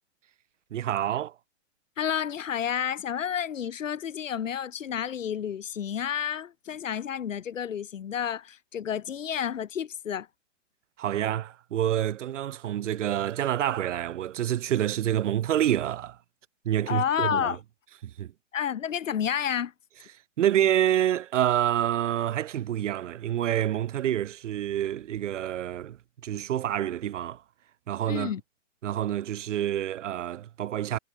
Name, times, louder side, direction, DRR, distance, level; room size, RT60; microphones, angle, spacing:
voice 1, 0.7-1.3 11.0-16.2 16.6-17.6 18.0-18.3 20.4-26.0 26.2-27.4 27.9-28.3 28.8-31.0, right 11 dB, 75° right, 1.3 m, -27 dB
voice 2, 2.0-10.3 16.9-17.6 18.5-19.7 28.1-28.4, left 8 dB, 90° left, 3.2 m, -30 dB
hypercardioid pair, 160°, 37 cm